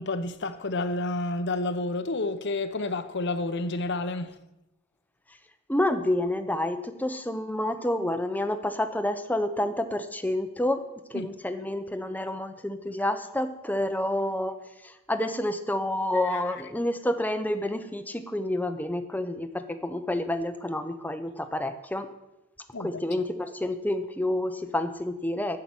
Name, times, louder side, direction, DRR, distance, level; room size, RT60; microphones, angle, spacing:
voice 1, 0.0-4.4 11.1-11.3 22.7-23.0, left 2 dB, 50° left, 0.9 m, -30 dB
voice 2, 5.7-10.8 11.1-14.6 14.8-22.1 22.8-25.6, left 1 dB, 5° left, 0.8 m, -29 dB
13.5 x 5.8 x 9.7 m
head